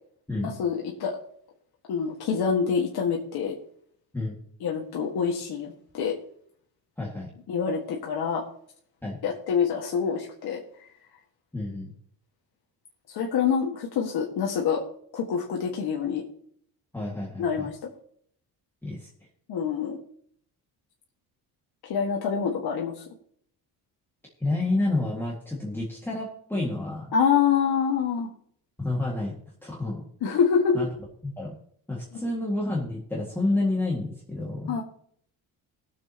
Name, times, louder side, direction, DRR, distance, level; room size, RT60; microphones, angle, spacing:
voice 1, 0.4-1.2 1.9-3.6 4.6-6.1 7.5-8.4 9.2-10.6 13.1-14.8 15.1-16.2 17.4-17.7 19.5-20.0 21.8-23.0 27.1-28.3 30.2-30.8 32.1-32.3 34.7-34.8, left 6 dB, 75° left, -1 dB, 1.7 m, -26 dB
voice 2, 7.0-7.3 9.0-9.2 11.5-11.9 16.9-17.7 18.8-19.1 24.4-27.1 28.8-29.3 29.6-30.1 30.7-30.9 31.2-31.6 31.9-34.8, left 2 dB, 5° left, -4 dB, 1.9 m, -29 dB
20.5 x 7.5 x 2.9 m, 0.64 s
cardioid pair, 165°, 39 cm